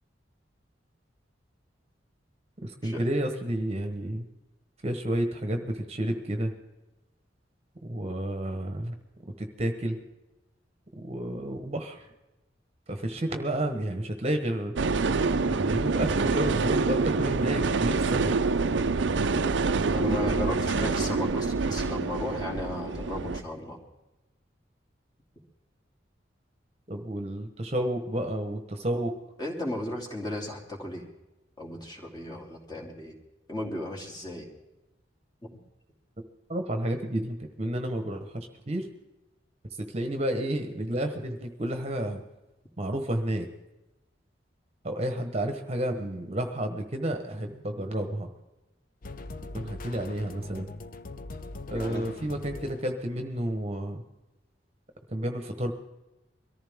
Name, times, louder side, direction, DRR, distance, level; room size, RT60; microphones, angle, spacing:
voice 1, 2.6-4.2 4.8-6.5 7.9-8.9 9.4-10.0 11.0-12.0 12.9-14.7 15.5-18.3 26.9-29.1 36.5-38.8 39.9-42.2 42.8-43.5 44.8-48.3 49.5-50.7 51.7-54.0 55.1-55.7, right 1 dB, 35° right, 6 dB, 1.2 m, -31 dB
sound 1, 14.8-23.4, right 4 dB, 90° right, 0.6 m, -26 dB
voice 2, 19.9-23.8 29.4-31.1 31.6-33.1 33.5-34.5 35.4-35.5 51.7-52.0, left 1 dB, 25° left, -1 dB, 2.9 m, -35 dB
sound 2, 49.0-53.2, left 2 dB, 50° left, 0.7 m, -41 dB
23.0 x 14.5 x 3.7 m, 1.0 s
head